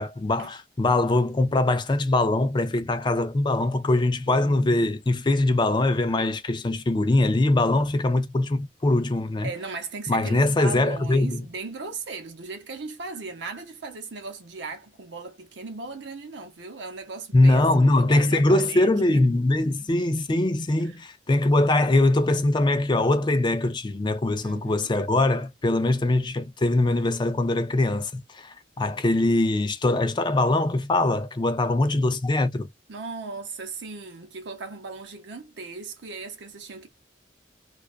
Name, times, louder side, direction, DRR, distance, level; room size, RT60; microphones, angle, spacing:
voice 1, 0.0-9.5 10.1-11.4 17.3-32.7, left 2 dB, 25° left, 0.4 m, -22 dB
voice 2, 4.3-5.0 9.4-17.7 17.9-19.2 24.4-24.9 32.9-36.9, right 3 dB, 75° right, 0.7 m, -37 dB
2.4 x 2.2 x 2.3 m
head